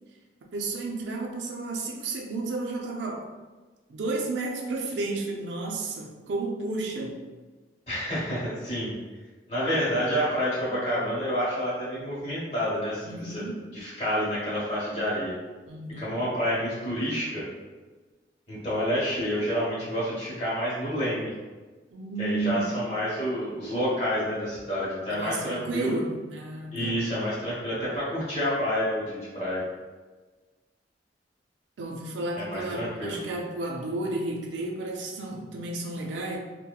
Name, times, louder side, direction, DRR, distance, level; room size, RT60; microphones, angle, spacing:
voice 1, 0.5-3.3 3.9-7.2 13.0-13.7 15.7-16.3 21.9-22.9 25.1-27.0 31.8-36.4, right 2 dB, 85° right, 0 dB, 0.4 m, -32 dB
voice 2, 7.9-8.9 9.5-13.4 13.7-15.3 16.0-17.4 18.5-21.3 22.2-26.0 26.7-29.6 32.4-33.1, equal, 35° left, -8 dB, 1.1 m, -28 dB
2.8 x 2.1 x 2.3 m, 1.3 s
head